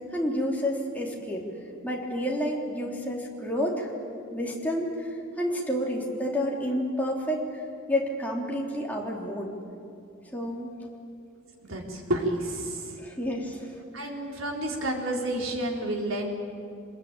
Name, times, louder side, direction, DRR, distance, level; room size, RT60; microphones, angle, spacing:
voice 1, 0.1-1.4 1.8-3.9 4.3-5.1 5.4-7.6 7.9-9.5 10.3-10.7 13.0-14.1, equal, 10° left, -2 dB, 3.2 m, -30 dB
voice 2, 11.6-13.0 13.9-16.3, right 1 dB, 75° right, 0 dB, 4.0 m, -30 dB
24.5 x 21.5 x 9.0 m, 2.6 s
head